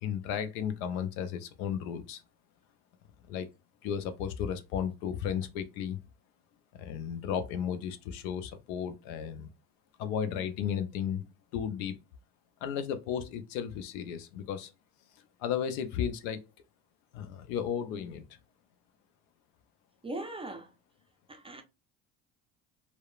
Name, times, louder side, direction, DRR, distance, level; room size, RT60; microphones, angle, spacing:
voice 1, 0.0-2.2 3.3-3.5 3.8-6.0 6.8-9.5 10.0-11.2 11.5-12.0 12.6-14.7 15.4-16.4 17.1-18.4, left 8 dB, 75° left, 0.6 m, -34 dB
voice 2, 20.0-20.7 21.3-21.6, right 2 dB, 15° right, 0.4 m, -39 dB
2.8 x 2.0 x 2.3 m
hypercardioid pair, 70°, 42 cm